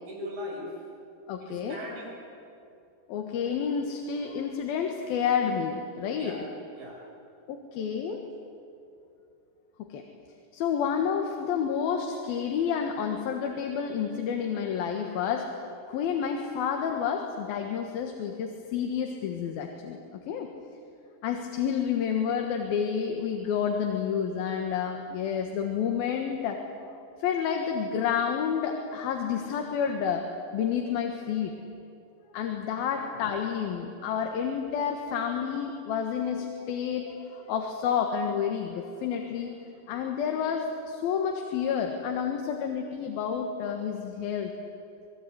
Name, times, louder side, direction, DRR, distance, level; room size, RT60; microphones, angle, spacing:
voice 1, 0.1-0.8 1.4-2.2 6.1-6.4 6.7-7.0 32.7-33.2, left 1 dB, 70° right, -1 dB, 7.4 m, -39 dB
voice 2, 1.3-1.8 3.1-6.4 7.5-8.2 9.9-10.0 10.5-20.5 21.2-26.9 27.2-31.5 32.3-39.5 39.9-44.5, left 7 dB, 85° left, 3 dB, 3.3 m, -30 dB
28.0 x 20.0 x 9.5 m, 2.6 s
omnidirectional pair, 4.2 m